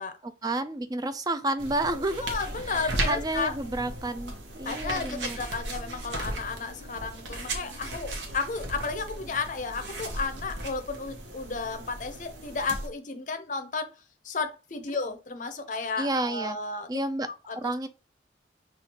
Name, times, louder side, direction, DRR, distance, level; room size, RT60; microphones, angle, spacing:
voice 1, 0.2-2.2 2.6-5.4 16.0-16.6 16.9-17.3 17.6-17.9, right 2 dB, 20° right, 0.3 m, -30 dB
sound 1, 1.6-12.9, right 1 dB, 75° right, 1.0 m, -36 dB
voice 2, 2.2-3.5 4.7-13.9 14.2-16.9 17.5-17.6, left 4 dB, 45° left, 0.6 m, -33 dB
6.0 x 2.4 x 2.8 m
head